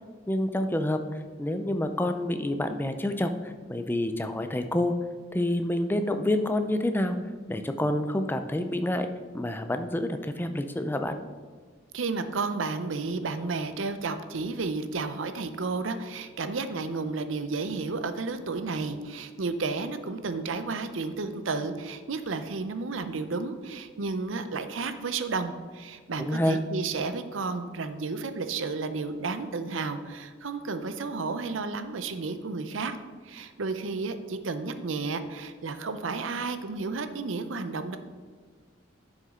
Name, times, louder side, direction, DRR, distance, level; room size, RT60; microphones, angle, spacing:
voice 1, 0.3-4.9 5.3-7.2 7.5-9.1 9.3-11.1 26.2-26.6, left 1 dB, 10° left, 7 dB, 0.5 m, -28 dB
voice 2, 11.9-32.9 33.2-38.0, right 4 dB, 75° right, 10 dB, 0.6 m, -32 dB
11.0 x 6.4 x 3.7 m, 1.5 s
head